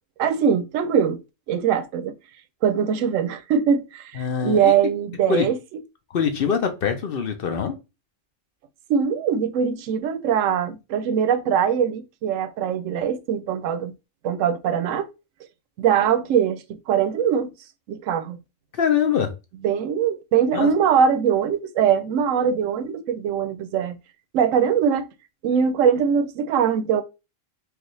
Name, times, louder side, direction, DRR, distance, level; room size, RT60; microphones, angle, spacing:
voice 1, 0.2-1.2 1.5-2.2 2.6-5.6 8.9-13.9 14.2-15.1 15.8-17.5 17.9-18.4 19.6-24.0 24.3-25.1 25.4-27.0, right 7 dB, 90° right, 0.9 m, -22 dB
voice 2, 4.2-4.7 5.3-5.5 6.1-7.7 18.7-19.3 20.5-20.7, left 7 dB, 55° left, 0.7 m, -23 dB
4.8 x 2.4 x 3.1 m
omnidirectional pair, 1.3 m